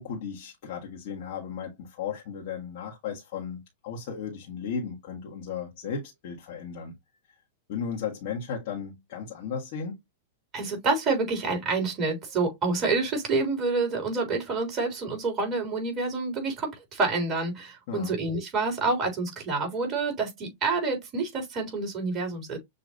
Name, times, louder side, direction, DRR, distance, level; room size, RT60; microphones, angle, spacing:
voice 1, 0.0-6.9 7.7-10.0 17.9-18.1, left 6 dB, 55° left, 1.5 m, -35 dB
voice 2, 10.5-22.6, right 3 dB, 35° right, 3.5 m, -28 dB
6.7 x 2.9 x 2.7 m
hypercardioid pair, 105°, 0 cm